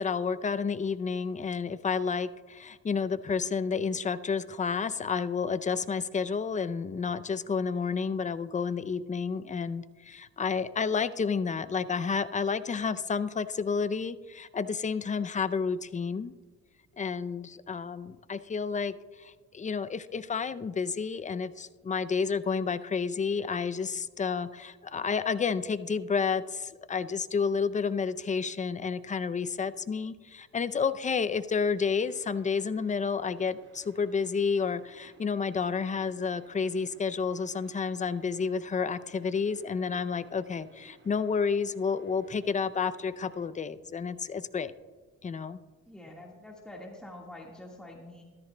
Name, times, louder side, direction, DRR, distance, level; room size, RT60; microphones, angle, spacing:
voice 1, 0.0-16.3 17.0-44.7 45.2-45.6, left 5 dB, 25° left, 14 dB, 0.4 m, -30 dB
sound 1, 31.7-43.5, right 2 dB, 40° right, 1.8 m, -59 dB
voice 2, 45.9-48.2, left 1 dB, 5° left, -1 dB, 1.6 m, -46 dB
13.5 x 13.5 x 2.2 m, 1.3 s
cardioid pair, 90°, 30 cm